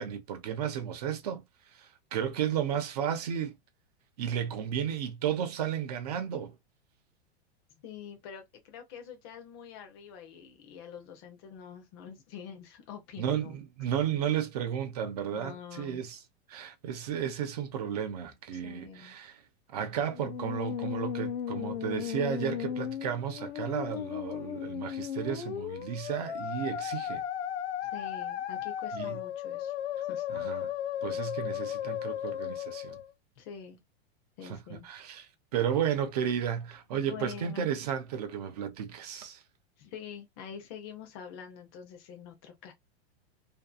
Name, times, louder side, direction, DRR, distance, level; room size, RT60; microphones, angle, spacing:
voice 1, 0.0-1.4 1.7-3.6 4.2-6.5 13.2-16.2 16.5-19.4 19.7-27.2 28.9-29.2 30.3-30.7 31.0-33.0 34.4-35.3 35.5-39.4, right 9 dB, 40° right, 0.4 m, -33 dB
voice 2, 7.8-13.6 15.3-16.0 18.5-19.1 27.8-29.7 30.1-30.2 33.4-33.8 34.4-34.9 36.9-37.7 39.8-42.7, left 8 dB, 25° left, 0.5 m, -46 dB
Musical instrument, 20.1-33.1, left 10 dB, 75° left, 0.7 m, -35 dB
2.6 x 2.3 x 2.3 m
supercardioid pair, 175°, 32 cm